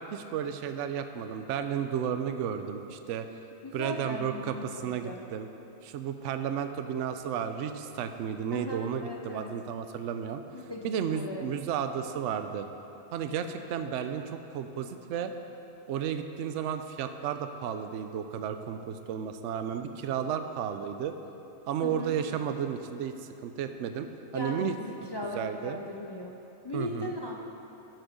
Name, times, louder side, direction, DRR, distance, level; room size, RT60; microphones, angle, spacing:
voice 1, 0.1-3.3 3.7-5.5 5.8-10.4 10.8-12.7 13.1-15.3 15.9-21.1 21.7-23.2 23.4-24.7 25.3-25.8 26.7-27.1, right 8 dB, 70° right, 8 dB, 0.9 m, -33 dB
voice 2, 3.6-5.2 8.5-9.6 10.5-11.5 21.8-22.1 24.3-26.4 26.6-27.5, left 1 dB, 35° left, -1 dB, 0.4 m, -38 dB
12.5 x 6.2 x 5.1 m, 2.9 s
omnidirectional pair, 1.4 m